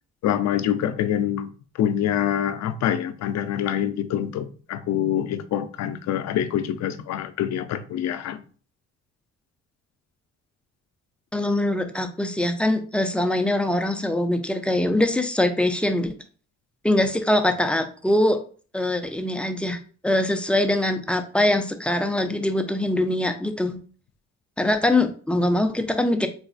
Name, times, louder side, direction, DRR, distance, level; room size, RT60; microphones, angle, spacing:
voice 1, 0.2-8.4, left 10 dB, 65° left, 0.4 m, -25 dB
voice 2, 11.3-16.1 16.8-18.4 18.7-23.8 24.6-26.3, left 1 dB, 5° left, 0.4 m, -23 dB
4.0 x 2.4 x 2.4 m
cardioid pair, 90°, 30 cm